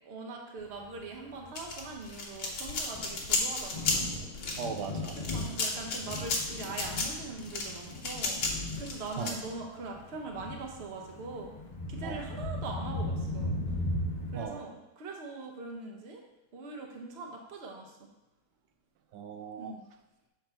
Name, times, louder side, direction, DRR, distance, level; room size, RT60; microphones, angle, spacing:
voice 1, 0.0-4.1 5.3-8.4 8.8-11.5 11.9-13.6 14.3-16.2 16.5-18.1 19.6-19.8, right 3 dB, 45° right, 1 dB, 1.0 m, -42 dB
Thunder, 0.8-14.4, left 1 dB, 40° left, 0.6 m, -38 dB
sound 1, 1.6-9.3, left 3 dB, 85° left, 1.7 m, -33 dB
voice 2, 4.6-5.2 9.2-9.4 12.0-12.3 14.3-14.7 19.1-19.7, right 7 dB, 90° right, 6 dB, 1.2 m, -38 dB
6.6 x 3.9 x 4.3 m, 1.0 s
omnidirectional pair, 1.8 m